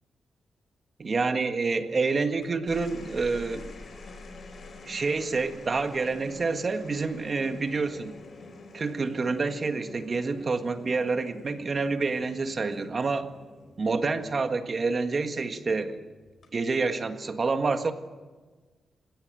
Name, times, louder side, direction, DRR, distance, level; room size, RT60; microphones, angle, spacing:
voice 1, 1.0-3.7 4.8-8.1 8.7-13.3 13.8-16.1 16.5-17.9, right 4 dB, 40° right, 7 dB, 1.7 m, -28 dB
sound 1, 2.4-15.0 16.3-16.7, left 3 dB, 50° left, 4.8 m, -47 dB
27.5 x 17.0 x 9.1 m, 1.3 s
wide cardioid pair, 115°, 0 cm